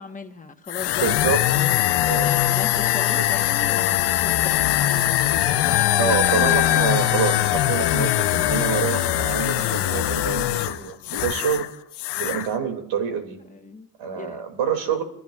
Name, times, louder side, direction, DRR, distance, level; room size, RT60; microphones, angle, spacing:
voice 1, 0.0-4.7 11.3-11.4 13.4-13.9 14.2-14.4, left 4 dB, 15° left, 4 dB, 1.2 m, -37 dB
sound 1, 0.7-11.7 11.9-12.5, left 14 dB, 55° left, 0.8 m, -21 dB
voice 2, 1.0-1.4 2.0-2.4 6.0-11.7 12.2-13.4 14.0-15.0, right 7 dB, 65° right, 5 dB, 2.6 m, -27 dB
27.5 x 14.5 x 2.4 m, 0.81 s
cardioid pair, 100°, 49 cm